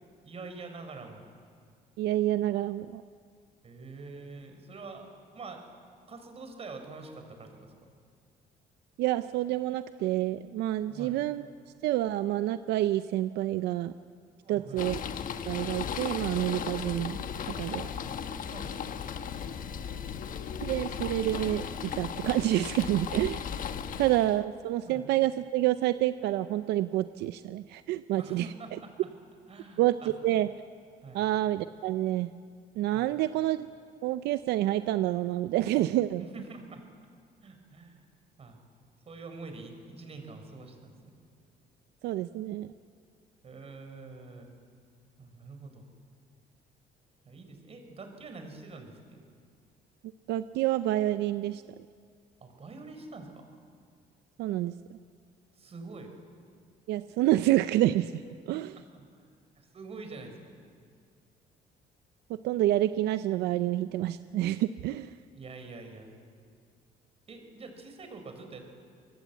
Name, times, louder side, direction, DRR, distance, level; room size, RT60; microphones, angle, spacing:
voice 1, 0.2-1.2 3.6-5.7 6.1-7.9 10.9-11.3 14.4-14.9 17.8-19.0 24.8-25.1 28.2-28.9 29.5-30.1 31.0-31.3 32.9-33.2 36.2-36.8 37.4-38.0 38.4-38.6 39.0-41.2 43.4-44.5 45.2-45.9 47.2-49.2 52.4-53.4 55.5-56.1 58.5-58.6 58.9-59.3 59.6-60.5 65.3-66.1 67.3-68.6, right 3 dB, 35° right, 5 dB, 4.7 m, -45 dB
voice 2, 2.0-3.0 9.0-11.4 11.8-13.9 14.5-15.0 15.5-17.2 17.6-17.8 20.6-23.4 24.0-28.5 29.8-29.9 30.2-30.5 31.1-32.3 32.8-33.7 34.0-36.2 42.0-42.7 50.3-51.6 54.4-54.7 56.9-58.1 58.5-58.7 62.4-65.1, right 14 dB, 80° right, 12 dB, 0.6 m, -28 dB
sound 1, 14.8-24.4, left 7 dB, 55° left, 1.2 m, -36 dB
25.5 x 20.0 x 8.3 m, 2.2 s
cardioid pair, 110°, 17 cm